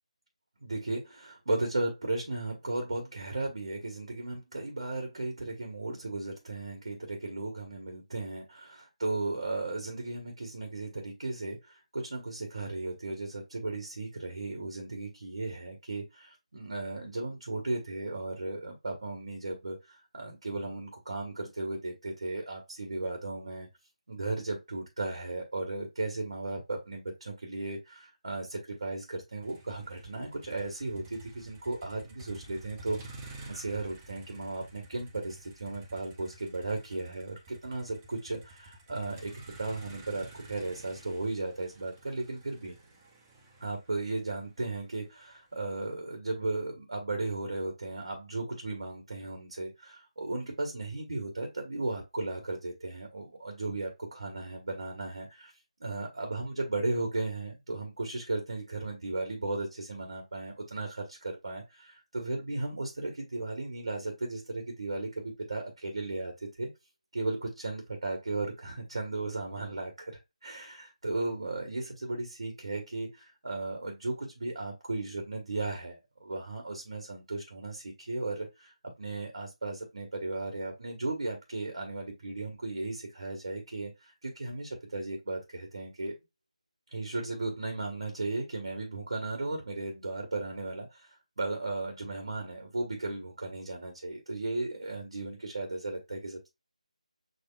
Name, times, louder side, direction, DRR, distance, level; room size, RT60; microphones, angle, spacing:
voice 1, 0.6-23.7 24.1-33.2 33.4-39.3 39.6-42.8 43.6-55.5 55.8-66.7 67.1-70.1 70.4-78.7 79.0-86.1 86.9-91.1 91.4-96.5, right 2 dB, 55° right, 2 dB, 1.2 m, -35 dB
Motor vehicle (road), 29.4-45.5, right 2 dB, 15° right, 0.6 m, -51 dB
6.6 x 2.3 x 2.3 m, 0.22 s
figure-of-eight pair, 155°, 4 cm